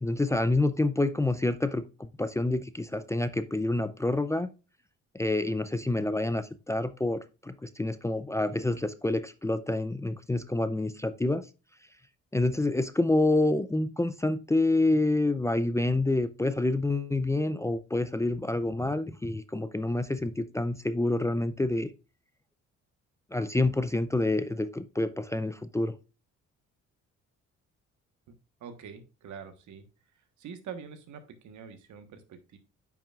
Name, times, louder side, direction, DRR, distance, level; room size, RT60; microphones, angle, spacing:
voice 1, 0.0-4.5 5.1-11.5 12.3-21.9 23.3-25.9, left 2 dB, 10° left, 0.4 m, -28 dB
voice 2, 28.3-29.9 30.1-32.6, right 7 dB, 75° right, 1.3 m, -45 dB
8.7 x 6.0 x 2.4 m
cardioid pair, 90°, 30 cm